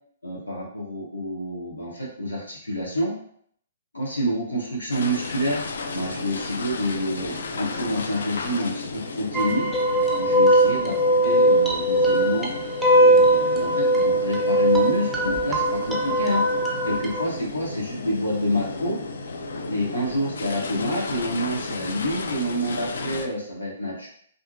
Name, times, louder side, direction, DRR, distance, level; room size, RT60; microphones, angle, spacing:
voice 1, 0.2-3.1 3.9-5.6 5.9-9.7 10.2-12.6 12.9-19.0 19.6-24.1, equal, 90° left, -4 dB, 0.7 m, -28 dB
sound 1, 4.9-23.3, left 3 dB, 70° left, 0.3 m, -34 dB
sound 2, 9.3-17.2, right 1 dB, 5° right, 0.5 m, -20 dB
2.7 x 2.6 x 2.4 m, 0.64 s
figure-of-eight pair, 120°, 0 cm